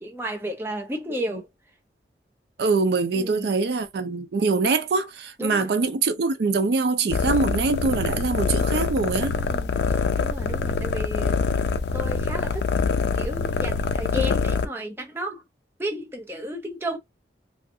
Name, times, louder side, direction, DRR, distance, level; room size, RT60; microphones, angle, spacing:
voice 1, 0.0-1.5 3.1-3.5 5.4-5.7 9.4-9.7 10.2-11.4 11.9-15.4 15.8-17.0, equal, 15° right, 0.5 m, -33 dB
voice 2, 2.6-9.4, right 4 dB, 65° right, 0.4 m, -24 dB
sound 1, 7.1-14.7, left 5 dB, 70° left, 0.4 m, -25 dB
2.5 x 2.3 x 2.6 m
head